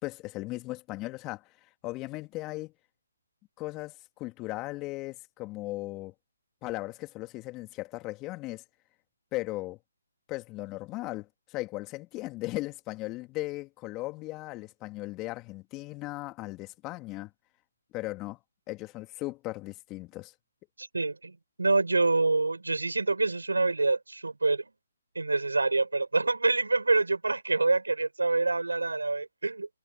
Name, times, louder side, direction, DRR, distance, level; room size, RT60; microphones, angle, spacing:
voice 1, 0.0-1.5 1.8-2.7 3.6-6.1 6.6-8.6 9.3-9.8 10.3-17.3 17.9-18.4 18.7-20.3, left 20 dB, 20° left, 2.5 m, -37 dB
voice 2, 20.8-24.7 25.1-29.7, right 3 dB, 85° right, 6.1 m, -26 dB
figure-of-eight pair, 140°, 0 cm